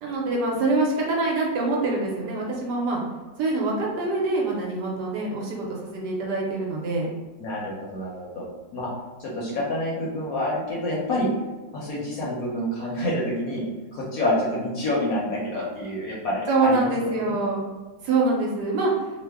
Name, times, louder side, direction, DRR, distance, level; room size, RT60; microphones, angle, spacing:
voice 1, 0.0-3.0 3.4-7.1 16.5-17.6 18.0-18.9, right 3 dB, 70° right, -2 dB, 1.1 m, -25 dB
voice 2, 7.4-8.4 8.7-8.9 9.2-11.3 11.7-13.6 13.9-17.4, left 1 dB, 65° left, -5 dB, 1.0 m, -28 dB
3.1 x 2.0 x 3.3 m, 1.2 s
omnidirectional pair, 2.0 m